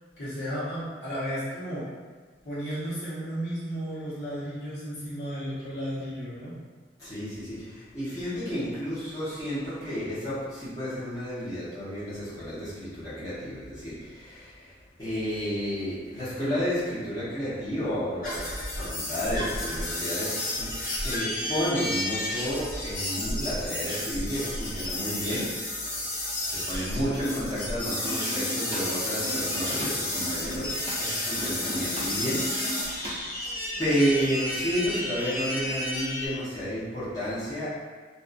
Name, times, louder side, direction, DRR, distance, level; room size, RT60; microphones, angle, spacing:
voice 1, 0.2-1.9 2.4-6.5, equal, 70° left, -11 dB, 1.1 m, -33 dB
voice 2, 7.0-25.6 26.5-33.3 33.8-37.7, equal, 20° left, -14 dB, 1.0 m, -31 dB
sound 1, 18.2-36.3, left 1 dB, 50° left, 0.6 m, -32 dB
sound 2, 19.9-25.6 25.8-27.3 27.6-33.5, left 1 dB, 65° right, 1.1 m, -39 dB
sound 3, 28.0-28.8 29.1-33.1, equal, 30° right, 0.6 m, -37 dB
2.6 x 2.4 x 2.5 m, 1.4 s
head